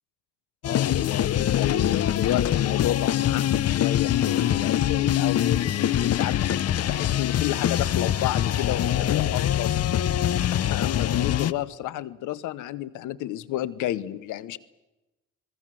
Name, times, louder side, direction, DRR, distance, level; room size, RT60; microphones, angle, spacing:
voice 1, 0.6-9.8 10.7-14.6, left 13 dB, 90° left, 19 dB, 0.9 m, -31 dB
sound 1, 0.6-11.5, left 11 dB, 55° left, 0.7 m, -24 dB
26.0 x 20.5 x 7.6 m, 1.0 s
cardioid pair, 90°, 30 cm